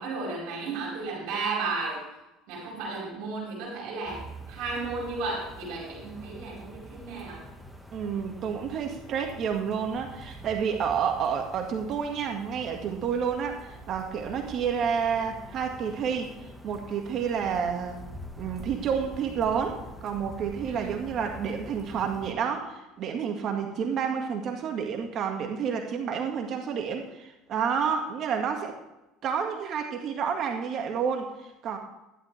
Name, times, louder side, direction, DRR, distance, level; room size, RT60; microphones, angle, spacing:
voice 1, 0.0-2.0 2.5-7.5 20.7-21.0, right 3 dB, 65° right, -2 dB, 4.7 m, -34 dB
sound 1, 4.1-22.3, right 1 dB, ahead, 1.6 m, -45 dB
voice 2, 7.9-16.3 16.6-18.0 18.4-28.8 29.2-31.8, right 7 dB, 50° right, 4 dB, 1.9 m, -30 dB
14.0 x 11.5 x 3.4 m, 0.95 s
hypercardioid pair, 70°, 0 cm